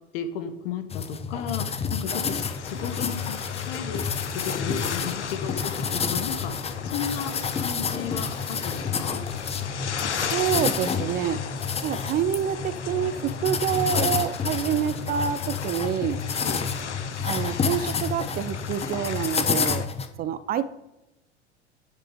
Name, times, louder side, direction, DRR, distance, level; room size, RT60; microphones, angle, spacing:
voice 1, 0.1-9.2 16.3-16.8, left 7 dB, 55° left, 8 dB, 1.3 m, -34 dB
sound 1, 0.9-20.1, left 6 dB, 20° left, 0.9 m, -29 dB
sound 2, 2.1-19.9, left 7 dB, 85° left, 0.7 m, -36 dB
voice 2, 10.2-11.4 11.8-16.2 17.2-19.9 20.2-20.6, right 9 dB, 25° right, 14 dB, 0.5 m, -27 dB
10.0 x 6.1 x 5.0 m, 0.96 s
figure-of-eight pair, 75°, 34 cm